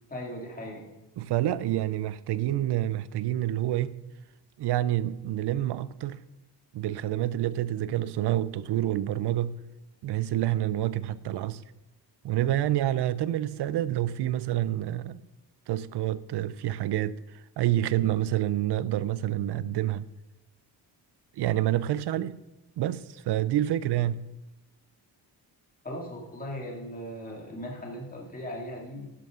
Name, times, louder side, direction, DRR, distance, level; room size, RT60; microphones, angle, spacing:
voice 1, 0.1-0.9 25.8-29.1, equal, 20° left, 2.3 m, -38 dB
voice 2, 1.2-4.0 4.6-6.2 6.7-9.6 10.0-11.6 12.2-15.2 15.7-20.1 21.4-22.4 22.8-24.3, right 13 dB, 65° right, 0.5 m, -28 dB
12.5 x 11.0 x 3.7 m
wide cardioid pair, 165°, 43 cm